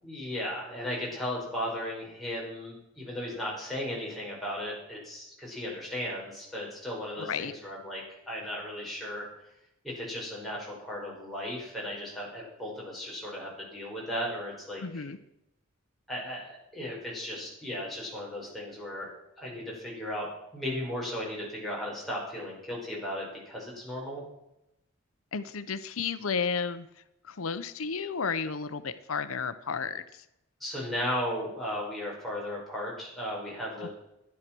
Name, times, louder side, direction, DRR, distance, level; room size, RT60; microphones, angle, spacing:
voice 1, 0.0-8.0 8.3-9.3 10.0-15.1 16.1-19.1 19.4-20.3 20.5-24.2 30.6-33.9, left 1 dB, ahead, -5 dB, 5.3 m, -36 dB
voice 2, 7.2-7.5 14.8-15.2 25.3-26.9 27.2-30.3 33.8-33.9, left 5 dB, 85° left, 12 dB, 0.7 m, -33 dB
13.0 x 10.5 x 6.1 m, 0.86 s
head